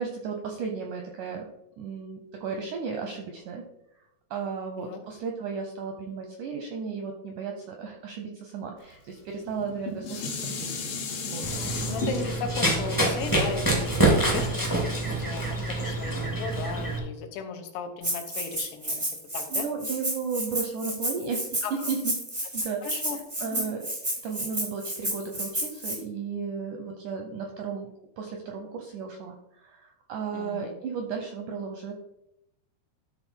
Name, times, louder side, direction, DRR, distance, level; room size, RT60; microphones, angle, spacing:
voice 1, 0.0-1.5 1.8-3.6 4.3-10.8 11.3-11.5 19.5-22.1 22.5-23.0 23.4-23.9 24.2-27.9 28.2-31.9, right 5 dB, 80° right, 3 dB, 1.8 m, -34 dB
Dishes pots and pans, 9.5-14.7 15.3-15.4, left 3 dB, 65° left, 3.2 m, -35 dB
Run, 11.4-17.0, right 2 dB, 15° left, 0.7 m, -26 dB
voice 2, 11.9-19.0 19.3-19.7 21.6-21.7 22.8-23.7 30.3-30.7, left 6 dB, 85° left, 5 dB, 3.2 m, -36 dB
Rattle (instrument), 18.0-26.0, right 1 dB, 30° right, 0.5 m, -31 dB
13.0 x 4.4 x 4.5 m, 0.84 s
omnidirectional pair, 4.7 m